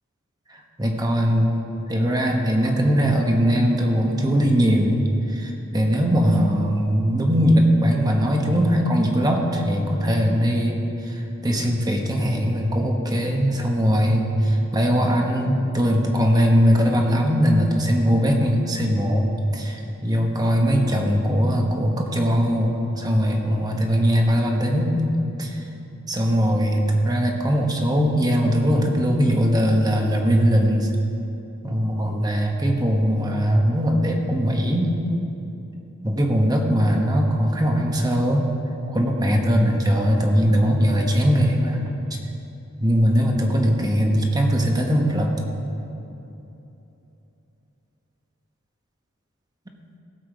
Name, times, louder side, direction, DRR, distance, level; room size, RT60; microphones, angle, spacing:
voice 1, 0.5-1.6 1.9-5.0 5.3-10.8 11.1-19.3 19.5-25.6 26.1-30.9 31.6-34.9 36.0-38.5 38.9-41.8 42.8-45.4, equal, 20° right, 1 dB, 1.3 m, -20 dB
17.0 x 7.3 x 4.8 m, 2.9 s
head